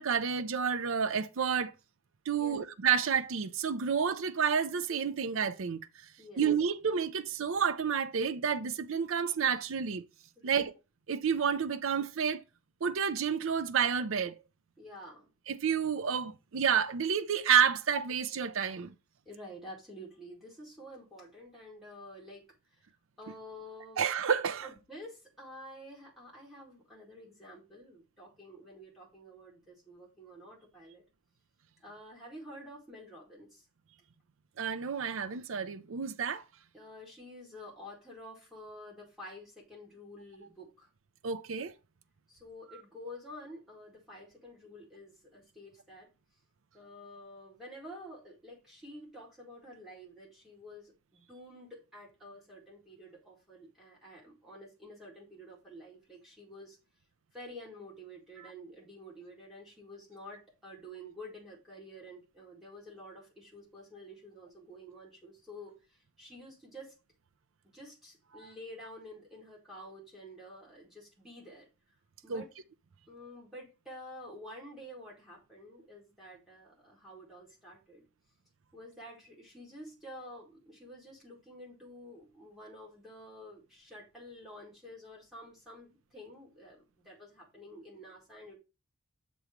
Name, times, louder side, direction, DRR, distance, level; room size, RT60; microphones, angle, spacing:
voice 1, 0.0-1.7 2.3-5.9 6.4-10.0 10.4-10.7 11.1-12.4 12.8-14.3 15.5-18.9 24.0-24.7 34.6-36.4 41.2-41.7 72.3-72.4, right 7 dB, 70° right, 0.5 m, -30 dB
voice 2, 14.8-15.3 19.3-22.8 23.2-24.1 24.6-31.0 31.8-33.6 36.7-40.9 42.3-46.1 46.7-56.8 57.3-67.0 67.7-71.7 72.2-72.5 73.1-78.0 78.7-88.6, equal, ahead, 2.0 m, -49 dB
6.9 x 3.1 x 5.0 m
head